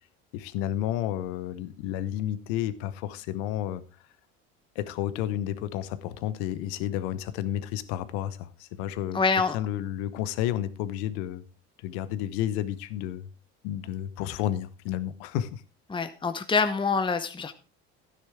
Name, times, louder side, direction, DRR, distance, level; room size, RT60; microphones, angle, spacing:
voice 1, 0.3-3.8 4.7-9.2 9.5-11.4 11.8-13.3 13.6-15.6, left 12 dB, 85° left, 14 dB, 1.0 m, -31 dB
voice 2, 9.1-9.6 15.9-17.5, left 4 dB, 15° left, 9 dB, 0.9 m, -25 dB
12.5 x 9.9 x 3.5 m, 0.32 s
supercardioid pair, 80°, 31 cm